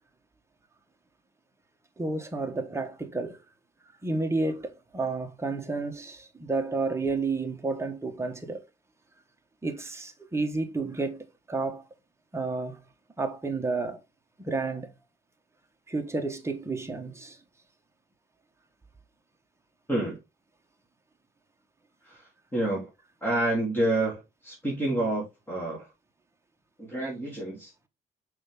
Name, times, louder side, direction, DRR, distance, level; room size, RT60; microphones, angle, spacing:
voice 1, 2.0-3.4 4.0-8.7 9.6-11.8 12.3-12.8 13.2-14.0 14.4-14.9 15.9-17.4, right 3 dB, 15° right, 1.4 m, -31 dB
voice 2, 22.1-22.9 23.2-25.9 26.8-27.7, right 1 dB, 10° left, 3.4 m, -29 dB
6.3 x 4.7 x 3.8 m
cardioid pair, 90°, 20 cm